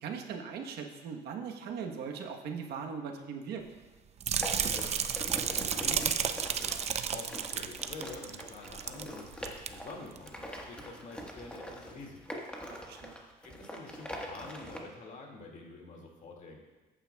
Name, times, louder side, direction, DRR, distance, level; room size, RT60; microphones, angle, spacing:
voice 1, 0.0-3.6 12.7-13.1, right 6 dB, 75° right, 3 dB, 1.1 m, -39 dB
sound 1, 4.2-9.1 9.3-9.7 10.2-10.3, right 7 dB, 40° right, 0.5 m, -32 dB
sound 2, 4.4-14.8, equal, 5° left, 1.4 m, -44 dB
voice 2, 4.6-5.1 5.4-6.6 7.1-12.4 13.4-16.6, left 3 dB, 45° left, 0 dB, 2.2 m, -47 dB
14.5 x 8.9 x 2.3 m, 1.2 s
cardioid pair, 110°, 17 cm